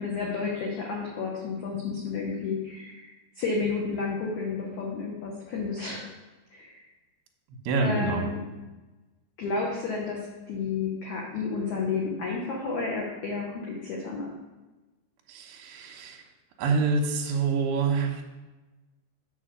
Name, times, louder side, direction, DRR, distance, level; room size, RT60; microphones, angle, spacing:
voice 1, 0.0-3.1 3.4-6.0 6.5-6.8 7.8-8.4 9.4-10.2 10.5-14.3, left 4 dB, 85° left, -2 dB, 1.6 m, -31 dB
voice 2, 7.6-8.3 15.3-16.2 16.6-18.2, right 4 dB, 70° right, 1 dB, 2.6 m, -26 dB
7.2 x 6.5 x 5.0 m, 1.2 s
omnidirectional pair, 5.1 m